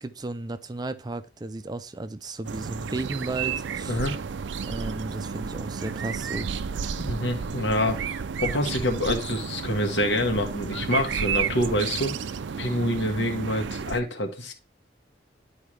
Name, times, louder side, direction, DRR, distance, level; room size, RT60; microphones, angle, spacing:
voice 1, 0.0-4.0 4.6-6.5, right 2 dB, 20° right, 0.4 m, -34 dB
sound 1, 2.4-14.0, right 6 dB, 85° right, 0.5 m, -32 dB
voice 2, 3.9-4.2 7.0-12.1 12.6-14.5, left 1 dB, 80° left, 1.6 m, -26 dB
10.5 x 4.7 x 3.3 m
head